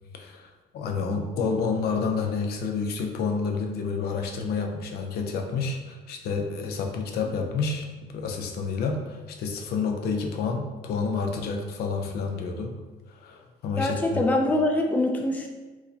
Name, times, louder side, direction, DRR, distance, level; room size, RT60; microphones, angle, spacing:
voice 1, 0.1-7.9 8.1-12.8 13.1-14.2, left 5 dB, 70° left, 3 dB, 0.5 m, -29 dB
voice 2, 13.8-15.5, left 1 dB, 10° left, 2 dB, 0.4 m, -24 dB
4.6 x 2.1 x 2.7 m, 1.2 s
cardioid pair, 110°, 17 cm